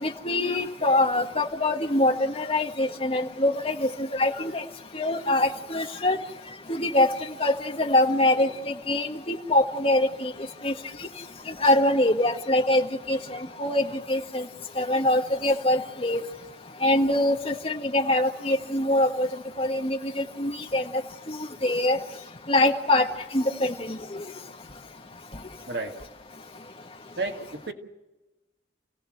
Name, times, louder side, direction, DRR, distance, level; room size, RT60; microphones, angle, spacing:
voice 1, 0.0-4.6 4.9-6.2 6.7-7.1 7.4-10.3 10.6-10.7 11.6-13.2 13.6-14.4 14.8-16.2 16.8-19.3 19.6-20.8 21.3-21.4 21.6-22.0 22.5-23.1 23.3-24.0, left 1 dB, 30° left, 4 dB, 1.6 m, -24 dB
voice 2, 27.2-27.7, right 3 dB, 65° right, 4 dB, 2.3 m, -31 dB
29.0 x 17.0 x 7.9 m, 1.1 s
head